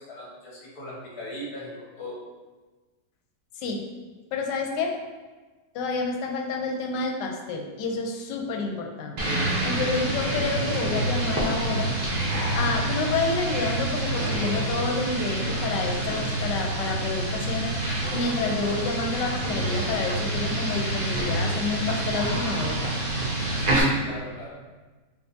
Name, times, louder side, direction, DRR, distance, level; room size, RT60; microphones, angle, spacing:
voice 1, 0.0-2.1 23.6-24.5, equal, 65° left, -5 dB, 1.5 m, -38 dB
voice 2, 4.3-4.9 5.7-9.2 9.7-11.9 12.5-17.7 18.1-22.8, left 4 dB, 90° left, 2 dB, 1.2 m, -29 dB
sound 1, 9.2-23.8, right 1 dB, 70° right, 0.4 m, -27 dB
4.9 x 2.4 x 2.6 m, 1.3 s
omnidirectional pair, 1.8 m